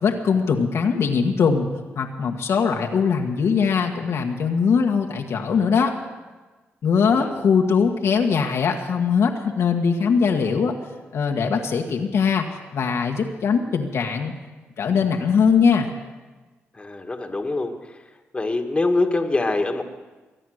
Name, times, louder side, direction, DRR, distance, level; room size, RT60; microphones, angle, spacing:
voice 1, 0.0-1.7 1.9-5.9 6.8-10.8 11.1-12.5 12.7-14.3 14.8-15.9, left 6 dB, 70° left, 2 dB, 1.5 m, -21 dB
voice 2, 16.8-17.7 18.3-19.8, left 2 dB, 25° left, 5 dB, 1.7 m, -24 dB
23.5 x 9.3 x 6.5 m, 1.3 s
cardioid pair, 75°, 5 cm